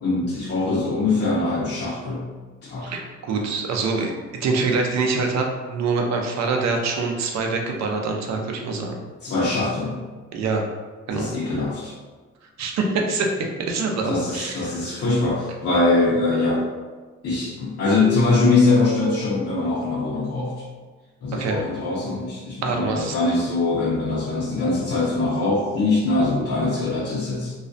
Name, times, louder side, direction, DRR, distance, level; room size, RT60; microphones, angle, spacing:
voice 1, 0.0-2.2 2.6-2.9 9.2-10.0 11.1-12.0 14.1-16.6 17.2-20.5 21.2-27.5, left 3 dB, 50° left, -7 dB, 0.6 m, -22 dB
voice 2, 2.8-9.0 10.3-10.6 11.1-11.3 12.6-13.3 13.6-15.0 21.3-21.6 22.6-23.2, right 4 dB, 60° right, 2 dB, 0.5 m, -25 dB
2.3 x 2.1 x 2.5 m, 1.3 s
cardioid pair, 90°, 30 cm